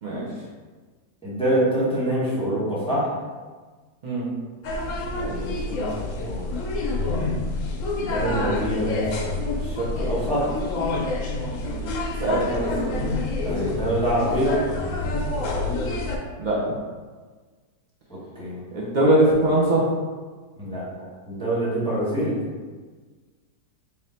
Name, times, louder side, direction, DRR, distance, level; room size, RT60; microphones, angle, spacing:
voice 1, 1.2-3.1 5.2-5.9 6.2-6.5 7.9-9.3 9.6-10.5 12.3-12.4 13.4-14.6 18.1-18.6 20.6-20.8 21.3-22.4, right 1 dB, 5° left, -8 dB, 0.6 m, -25 dB
sound 1, 4.6-16.2, left 2 dB, 70° left, 0.7 m, -27 dB
voice 2, 12.2-13.2 16.4-16.7 18.7-19.9, right 1 dB, 70° right, -5 dB, 0.4 m, -21 dB
3.5 x 2.6 x 4.2 m, 1.4 s
omnidirectional pair, 1.9 m